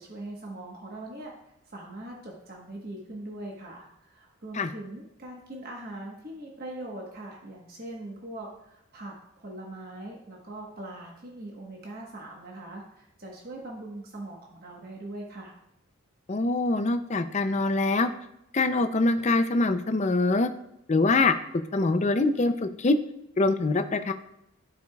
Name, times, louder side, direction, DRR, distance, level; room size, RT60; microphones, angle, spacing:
voice 1, 0.0-1.3 1.7-15.5, right 1 dB, 45° right, -2 dB, 1.2 m, -41 dB
voice 2, 16.3-18.1 18.5-20.5 20.9-21.3 21.7-23.0 23.4-24.1, left 3 dB, 35° left, 9 dB, 0.5 m, -24 dB
13.5 x 4.9 x 2.3 m, 0.82 s
head